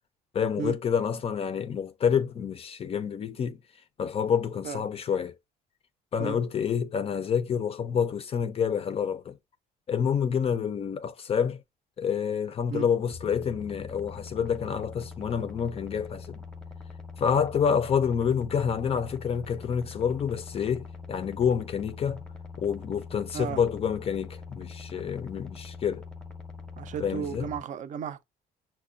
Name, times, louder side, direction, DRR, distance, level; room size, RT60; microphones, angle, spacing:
voice 1, 0.3-3.6 4.0-5.3 6.1-9.3 9.9-11.6 12.0-16.4 17.2-22.2 22.6-26.0 27.0-27.5, left 7 dB, 35° left, 0.4 m, -28 dB
sound 1, 13.1-27.6, left 4 dB, 5° left, 0.7 m, -43 dB
voice 2, 26.8-28.2, right 7 dB, 50° right, 0.5 m, -34 dB
5.7 x 2.1 x 2.5 m
cardioid pair, 110°, 17 cm